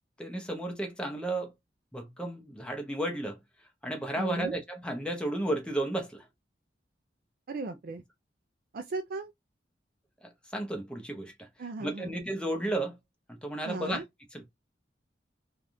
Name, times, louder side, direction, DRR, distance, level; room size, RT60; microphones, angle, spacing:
voice 1, 0.2-1.5 1.9-3.4 3.8-6.3 10.2-11.5 11.8-13.0 13.3-14.0 14.3-14.4, right 1 dB, 5° left, 0.8 m, -33 dB
voice 2, 4.2-4.6 7.5-8.0 8.7-9.3 11.6-12.2 13.6-14.0, right 3 dB, 55° right, 0.4 m, -36 dB
3.3 x 2.4 x 2.6 m
head